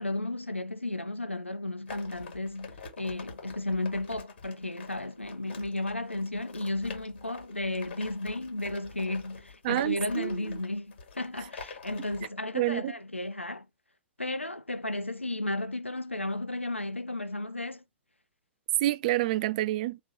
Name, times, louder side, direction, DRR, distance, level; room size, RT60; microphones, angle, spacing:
voice 1, 0.0-13.7 14.2-17.8, left 2 dB, 90° left, 0.4 m, -34 dB
sound 1, 1.9-12.3, left 5 dB, 55° left, 1.9 m, -46 dB
voice 2, 9.6-10.4 12.5-12.9 18.8-20.0, right 15 dB, 40° right, 0.4 m, -28 dB
3.4 x 2.9 x 4.2 m
figure-of-eight pair, 105°, 6 cm